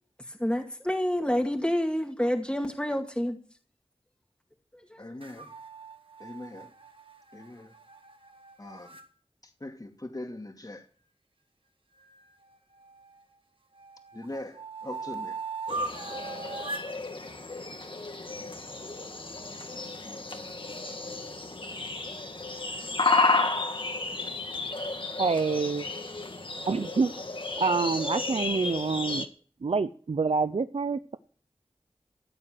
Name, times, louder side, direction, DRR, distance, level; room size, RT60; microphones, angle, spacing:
voice 1, 0.3-3.4 4.9-5.0, equal, 10° left, 2.1 m, -28 dB
voice 2, 5.0-5.5 6.2-6.7 7.3-7.7 8.6-9.0 9.4-10.9 14.1-15.4, left 1 dB, 40° left, 2.5 m, -41 dB
sound 1, 5.2-9.1 12.0-13.2 13.7-16.9, right 3 dB, 60° right, 1.9 m, -40 dB
sound 2, 15.7-29.3, left 3 dB, 55° left, 1.9 m, -32 dB
voice 3, 25.2-25.9 26.7-27.3 27.6-29.3 29.6-31.2, right 4 dB, 75° right, 0.7 m, -27 dB
15.5 x 7.9 x 7.7 m
wide cardioid pair, 40°, 10 cm